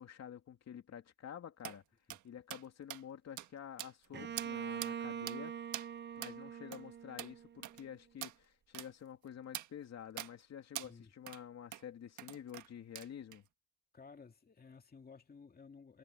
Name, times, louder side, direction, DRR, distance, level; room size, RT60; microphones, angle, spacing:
voice 1, 0.0-1.8 2.2-5.6 6.2-13.4, left 9 dB, 60° left, 2.9 m, -49 dB
sound 1, 1.6-1.8 2.1-2.2 2.5-2.7 2.9-3.0 3.4-3.5 3.8-4.1 4.4-4.5 4.8-4.9 5.3-5.4 5.7-5.9 6.2-6.4 6.7-6.8 7.2-7.3 7.6-7.8 8.2-8.4 8.7-8.9 9.5-9.7 10.2-10.3 10.8-10.9 11.3-11.4 11.7-11.8 12.2-12.7 13.0-13.4, right 13 dB, 80° right, 1.5 m, -44 dB
Bowed string instrument, 4.1-7.9, right 8 dB, 35° right, 0.6 m, -43 dB
voice 2, 13.9-16.0, left 5 dB, 30° left, 2.4 m, -56 dB
cardioid pair, 90°, 30 cm